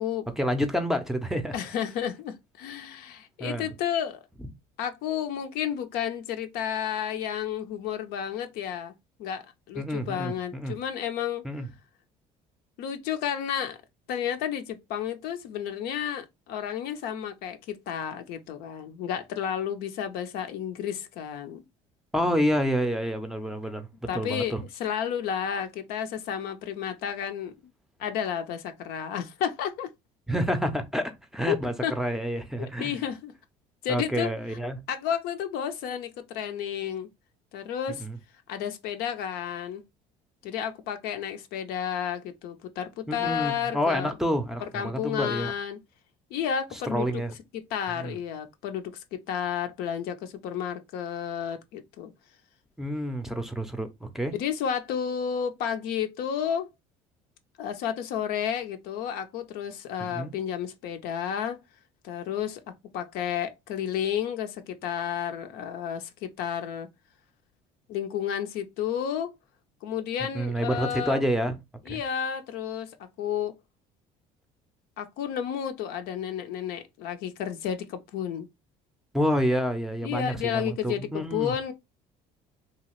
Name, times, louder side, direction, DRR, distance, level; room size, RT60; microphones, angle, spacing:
voice 1, 0.4-1.5 3.4-3.7 4.4-4.5 9.8-10.8 11.4-11.7 22.1-23.9 24.1-24.6 30.3-32.9 33.9-34.8 38.0-38.2 43.1-45.5 46.7-47.4 47.9-48.2 52.8-54.3 60.0-60.3 70.2-71.6 71.9-72.0 79.1-81.5, equal, ahead, 0.5 m, -28 dB
voice 2, 1.5-4.2 4.8-8.9 9.2-11.5 12.8-13.8 14.1-21.6 24.1-24.5 24.8-27.5 28.0-29.9 31.5-31.6 31.8-31.9 32.8-33.3 33.8-34.3 34.9-37.1 37.5-38.1 38.5-39.8 40.4-44.1 44.7-45.8 46.3-47.1 47.7-52.1 54.3-56.7 57.6-61.6 62.0-62.6 62.9-66.9 67.9-69.3 69.8-71.2 71.9-73.6 75.0-78.5 80.0-81.7, left 9 dB, 75° left, 0.5 m, -31 dB
2.8 x 2.3 x 2.9 m
supercardioid pair, 90°, 16 cm